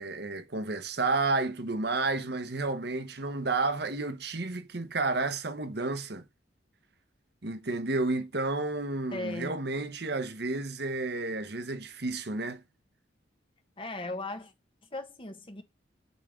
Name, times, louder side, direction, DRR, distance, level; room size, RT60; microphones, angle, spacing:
voice 1, 0.0-6.2 7.4-12.6, right 3 dB, 60° right, 1.0 m, -31 dB
voice 2, 9.1-9.6 13.8-14.5 14.9-15.6, left 2 dB, 30° left, 1.1 m, -37 dB
8.1 x 3.7 x 5.0 m
head